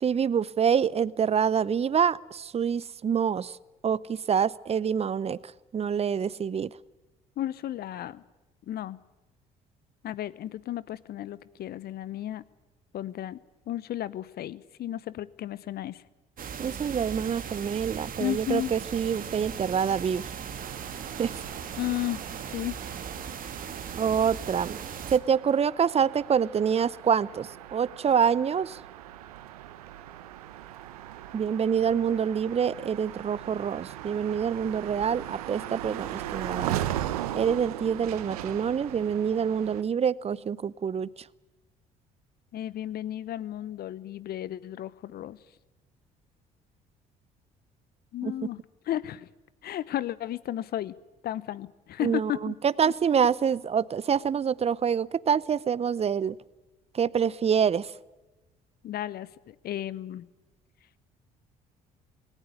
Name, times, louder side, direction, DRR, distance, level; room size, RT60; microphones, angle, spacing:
voice 1, 0.0-3.5 3.8-5.4 5.7-6.7 16.6-20.3 21.2-21.3 23.9-24.8 25.1-28.8 31.3-36.8 37.3-41.1 48.2-48.3 52.0-56.3 56.9-57.9, right 7 dB, 35° right, 22 dB, 0.7 m, -26 dB
voice 2, 7.4-8.2 8.7-9.0 10.0-12.4 12.9-13.4 13.7-16.0 18.2-18.7 21.8-22.2 22.5-22.8 42.5-45.4 48.1-48.6 48.9-49.3 49.6-50.9 51.2-52.5 52.9-53.0 58.8-60.3, left 12 dB, 55° left, 19 dB, 0.9 m, -33 dB
sound 1, 16.4-25.2, right 7 dB, 50° right, 1.8 m, -38 dB
sound 2, 20.6-39.8, right 12 dB, 85° right, 1.0 m, -39 dB
18.0 x 18.0 x 9.7 m, 1.1 s
hypercardioid pair, 55°, 19 cm